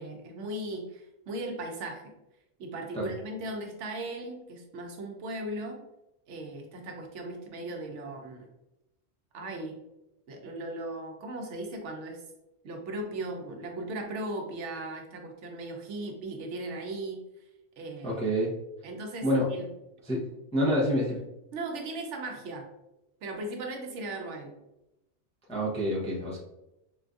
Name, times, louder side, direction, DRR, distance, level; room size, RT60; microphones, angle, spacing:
voice 1, 0.0-2.0 2.6-5.8 6.3-8.5 9.3-9.8 10.3-12.2 12.6-17.2 17.8-18.2 18.8-19.7 21.5-22.7 23.2-24.6, right 2 dB, 85° right, 3 dB, 1.0 m, -37 dB
voice 2, 18.0-18.5 19.2-19.5 20.0-20.2 20.5-21.2 25.5-26.4, equal, 5° left, -5 dB, 0.5 m, -27 dB
3.8 x 2.5 x 2.4 m, 0.91 s
omnidirectional pair, 1.2 m